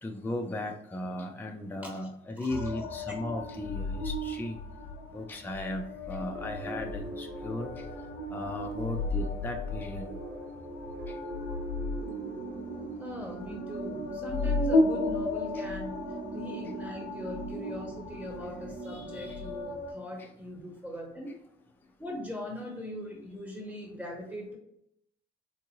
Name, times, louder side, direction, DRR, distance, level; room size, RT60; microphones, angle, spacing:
voice 1, 0.0-4.6 5.1-7.7 8.3-10.1 11.1-11.2 15.5-15.6 20.2-20.3, left 2 dB, 10° left, 3 dB, 0.4 m, -36 dB
voice 2, 2.4-2.9 12.9-16.0 16.3-21.3 22.0-24.6, left 1 dB, 5° right, -1 dB, 1.2 m, -40 dB
sound 1, 2.5-19.9, left 2 dB, 80° left, 0.6 m, -34 dB
sound 2, 6.3-20.1, right 2 dB, 65° right, 0.7 m, -42 dB
3.7 x 2.4 x 3.0 m, 0.75 s
cardioid pair, 90°, 20 cm